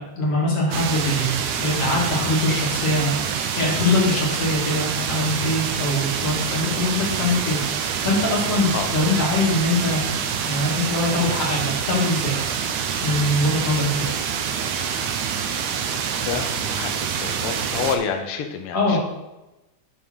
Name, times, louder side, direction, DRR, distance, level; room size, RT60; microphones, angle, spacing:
voice 1, 0.0-3.1 3.5-10.1 10.4-12.3 13.0-14.1 18.7-19.0, left 2 dB, 50° left, -4 dB, 3.3 m, -23 dB
sound 1, 0.7-18.0, right 7 dB, 75° right, 2.0 m, -26 dB
voice 2, 16.3-19.0, left 6 dB, 85° left, 5 dB, 1.2 m, -28 dB
9.1 x 3.7 x 6.2 m, 0.99 s
omnidirectional pair, 3.5 m